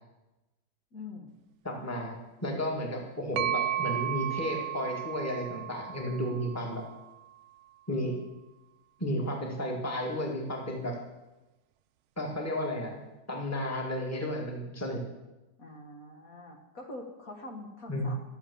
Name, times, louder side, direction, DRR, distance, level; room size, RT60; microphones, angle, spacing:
voice 1, 0.9-1.3 15.6-18.1, left 2 dB, 55° left, 1 dB, 2.0 m, -44 dB
voice 2, 1.6-6.8 7.9-8.2 9.0-11.0 12.2-13.0 13.3-15.0 17.9-18.1, equal, 10° left, 0 dB, 1.8 m, -33 dB
sound 1, 3.4-7.1, right 11 dB, 85° right, 0.6 m, -34 dB
13.0 x 7.4 x 7.0 m, 1.1 s
omnidirectional pair, 1.8 m